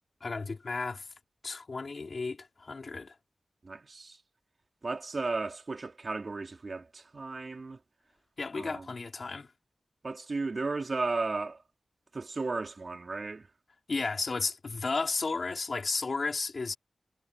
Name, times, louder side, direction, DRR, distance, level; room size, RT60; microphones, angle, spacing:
voice 1, 0.2-1.0 1.4-3.2 8.4-9.5 13.9-16.8, left 4 dB, 60° left, 3.3 m, -33 dB
voice 2, 3.6-4.2 4.8-7.8 8.5-8.9 10.0-11.6 12.1-13.5, right 3 dB, 55° right, 4.0 m, -34 dB
cardioid pair, 55°, 0 cm